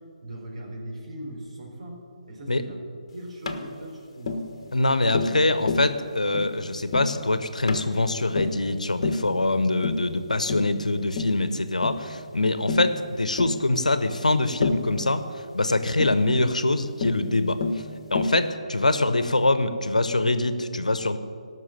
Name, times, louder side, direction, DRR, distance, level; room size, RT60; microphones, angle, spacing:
voice 1, 0.2-2.0 2.3-2.8 3.1-4.5, right 1 dB, 60° right, -2 dB, 4.1 m, -39 dB
Tap, 3.5-3.6 4.3-4.5 5.1-5.4 5.7-5.9 6.3-6.5 6.9-7.1 7.7-7.9 8.4-8.6 9.0-9.3 9.8-10.1 10.5-10.7 11.2-11.4 11.8-12.0 12.7-12.9 13.4-13.6 14.6-14.9 16.0-16.2 17.0-17.2 17.6-17.8 18.2-18.4, left 3 dB, 45° left, 1.2 m, -28 dB
voice 2, 4.7-15.2 15.5-17.6 18.1-21.2, left 2 dB, 75° left, 11 dB, 1.0 m, -24 dB
17.5 x 6.3 x 7.6 m, 2.3 s
figure-of-eight pair, 145°, 4 cm